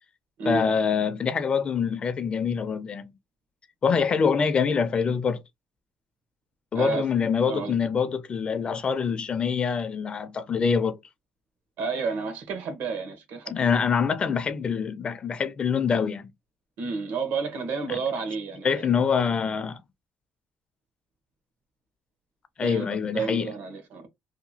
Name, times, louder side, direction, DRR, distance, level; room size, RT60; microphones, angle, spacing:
voice 1, 0.5-3.1 3.8-5.4 6.7-11.0 13.5-16.3 17.9-18.0 18.6-19.8 22.6-23.5, left 6 dB, 30° left, 0.4 m, -25 dB
voice 2, 6.7-7.1 7.5-7.8 11.8-13.8 16.8-18.9 22.6-24.1, right 5 dB, 80° right, 1.0 m, -31 dB
2.8 x 2.2 x 2.7 m
cardioid pair, 140°, 3 cm